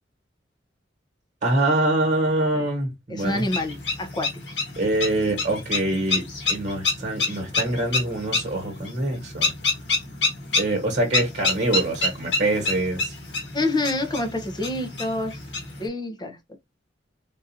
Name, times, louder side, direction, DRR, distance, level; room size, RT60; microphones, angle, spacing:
voice 1, 1.4-3.4 4.8-6.2 6.5-9.5 10.6-13.1, right 2 dB, 40° right, 1.4 m, -24 dB
voice 2, 3.1-4.3 13.5-15.4 15.8-16.4, left 2 dB, 25° left, 0.8 m, -27 dB
sound 1, 3.2-15.9, left 3 dB, 75° left, 1.6 m, -28 dB
3.8 x 2.6 x 2.7 m
head